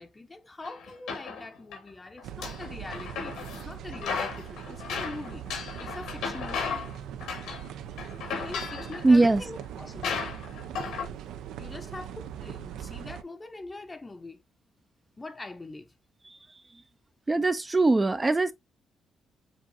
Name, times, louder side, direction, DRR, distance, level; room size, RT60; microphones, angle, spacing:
voice 1, 0.0-5.4 5.8-6.9 8.3-10.2 11.6-14.4 15.2-15.9, left 2 dB, 20° left, 0.6 m, -43 dB
sound 1, 0.6-1.8 2.2-3.6 3.9-6.9 7.2-7.7 8.0-9.1 9.6-9.7 10.0-11.1, left 5 dB, 90° left, 1.7 m, -35 dB
sound 2, 2.2-13.2, right 9 dB, 85° right, 0.4 m, -41 dB
voice 2, 9.0-9.4 17.3-18.5, right 2 dB, 20° right, 0.4 m, -21 dB
7.0 x 2.5 x 2.6 m
cardioid pair, 90°, 0 cm